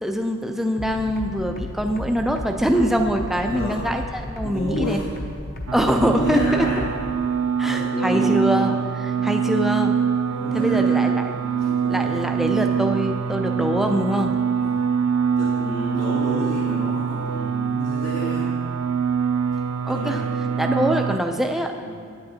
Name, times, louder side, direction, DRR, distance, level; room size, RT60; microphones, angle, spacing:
voice 1, 0.0-5.0 5.7-6.7 7.6-9.9 10.5-11.4 11.9-14.3 19.8-20.2 20.6-21.7, equal, ahead, 3 dB, 0.3 m, -23 dB
sound 1, 0.8-7.1, left 1 dB, 40° left, 0.7 m, -33 dB
voice 2, 3.5-3.8 4.4-5.1 5.8-6.9 7.6-8.4 10.3-12.1 14.5-14.8 15.4-18.5 19.9-21.0 21.8-21.9, left 1 dB, 90° left, -10 dB, 2.2 m, -31 dB
sound 2, 5.7-21.2, right 7 dB, 90° right, 0.3 m, -24 dB
10.0 x 8.7 x 2.8 m, 2.2 s
head